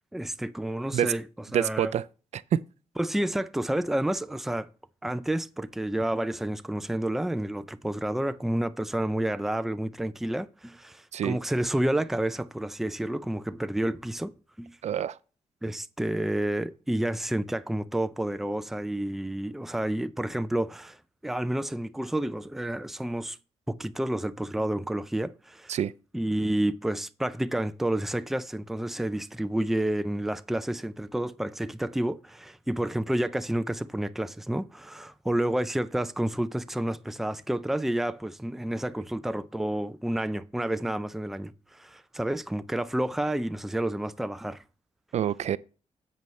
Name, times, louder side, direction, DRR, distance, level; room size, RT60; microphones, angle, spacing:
voice 1, 0.1-1.2 1.5-1.9 3.0-4.7 5.0-14.3 14.6-14.8 15.6-21.0 21.2-23.4 23.7-25.7 26.1-44.6, right 1 dB, ahead, 0.4 m, -30 dB
voice 2, 1.5-2.1 2.3-2.6 11.1-11.4 14.8-15.2 25.7-25.9 45.1-45.6, right 10 dB, 65° right, 0.4 m, -26 dB
10.5 x 7.7 x 3.2 m
wide cardioid pair, 145°, 13 cm